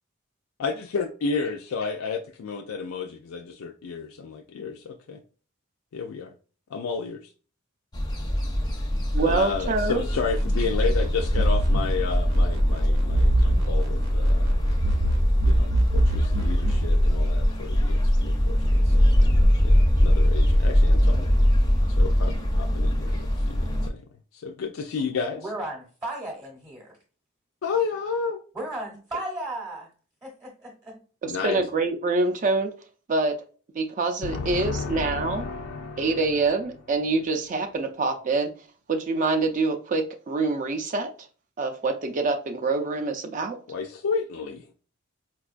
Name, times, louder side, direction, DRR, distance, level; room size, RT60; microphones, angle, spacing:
voice 1, 0.6-5.2 5.9-6.3 6.7-7.3 9.2-14.5 15.4-21.3 22.0-24.0 24.3-25.5 27.6-28.4 31.3-31.6 34.2-36.3 43.7-44.7, left 5 dB, 85° left, 0.4 m, -32 dB
sound 1, 7.9-23.9, equal, 20° left, 0.5 m, -22 dB
voice 2, 9.1-10.0 31.2-32.7 33.1-33.4 33.7-35.4 36.0-38.5 38.9-41.1 41.6-43.6, right 3 dB, 35° right, 0.4 m, -25 dB
sound 2, 10.1-16.9, right 1 dB, 75° right, 0.7 m, -24 dB
voice 3, 25.4-26.9 28.5-29.9 30.2-31.0, right 1 dB, 20° right, 0.7 m, -35 dB
4.4 x 2.3 x 2.4 m
head